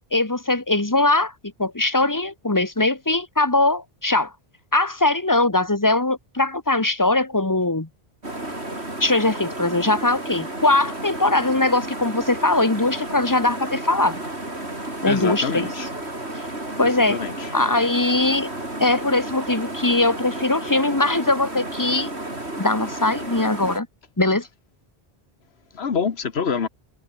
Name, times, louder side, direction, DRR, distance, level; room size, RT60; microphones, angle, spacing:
voice 1, 0.1-1.3 1.6-4.3 4.7-7.9 9.0-14.2 15.0-15.7 16.3-16.4 16.8-17.2 17.5-18.5 18.8-22.1 22.6-23.9 24.2-24.5, left 2 dB, 20° left, 1.6 m, -21 dB
sound 1, 8.2-23.8, right 1 dB, 80° right, 6.4 m, -32 dB
voice 2, 15.0-15.9 16.8-17.5 25.7-26.7, left 6 dB, 75° left, 1.6 m, -26 dB
omnidirectional pair, 1.1 m